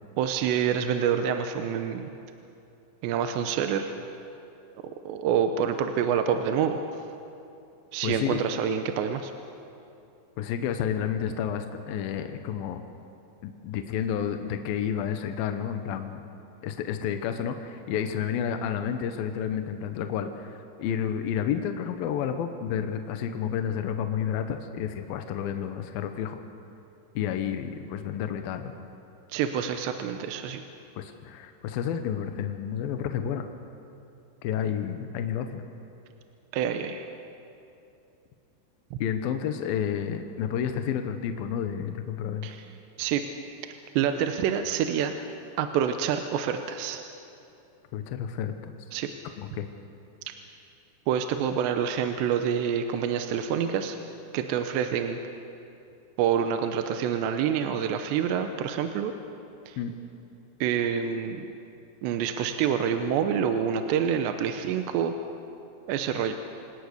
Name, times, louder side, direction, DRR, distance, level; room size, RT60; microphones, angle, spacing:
voice 1, 0.2-2.1 3.0-3.9 4.8-6.8 7.9-9.3 29.3-30.6 36.5-37.1 42.4-42.7 43.0-43.2 44.0-45.1 45.6-47.0 48.9-49.1 51.1-54.0 54.3-55.2 56.2-59.1 59.7-59.8 60.6-61.5 62.0-65.1 65.9-66.3, right 8 dB, 80° right, 7 dB, 2.9 m, -27 dB
voice 2, 8.0-8.4 10.4-12.8 13.4-16.2 16.6-26.4 27.2-28.7 31.0-33.4 34.4-35.6 39.0-42.5 47.9-48.7 49.4-49.7 59.8-59.9, left 8 dB, 75° left, 7 dB, 2.2 m, -30 dB
27.0 x 18.5 x 6.6 m, 2.7 s
omnidirectional pair, 5.4 m